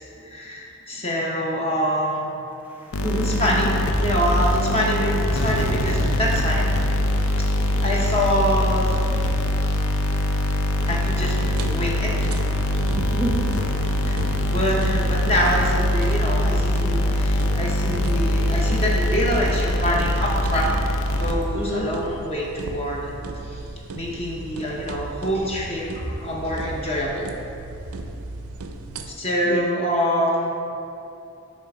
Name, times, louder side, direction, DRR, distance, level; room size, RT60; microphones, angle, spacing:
voice 1, 0.2-2.4 3.2-6.8 7.2-7.5 7.8-8.9 10.8-11.4 11.6-12.3 12.8-13.2 14.0-14.2 14.5-20.7 21.2-23.1 23.4-23.6 23.9-27.3 29.1-30.5, equal, 30° left, -3 dB, 0.7 m, -25 dB
voice 2, 2.7-3.4 7.1-7.8 12.6-14.5 17.1-17.6 21.5-21.9 29.5-29.7, equal, 10° right, -4 dB, 0.8 m, -32 dB
sound 1, 2.9-21.7, left 1 dB, 65° left, 0.5 m, -23 dB
sound 2, 10.8-29.1, right 2 dB, 75° right, 0.5 m, -36 dB
7.5 x 3.2 x 5.8 m, 2.8 s
head